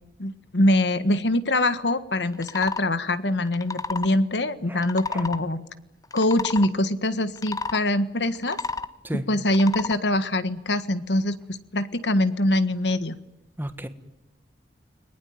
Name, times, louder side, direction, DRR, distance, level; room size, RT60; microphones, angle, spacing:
voice 1, 0.2-5.6 6.1-8.6 9.1-13.1, left 1 dB, 80° left, 13 dB, 1.6 m, -24 dB
sound 1, 2.3-2.8 3.5-4.1 4.8-5.4 6.0-6.7 7.4-7.8 8.3-8.9 9.5-10.0, left 4 dB, 20° left, 0.9 m, -31 dB
voice 2, 13.6-13.9, right 1 dB, 10° right, 9 dB, 1.5 m, -32 dB
30.0 x 20.5 x 9.4 m, 0.95 s
head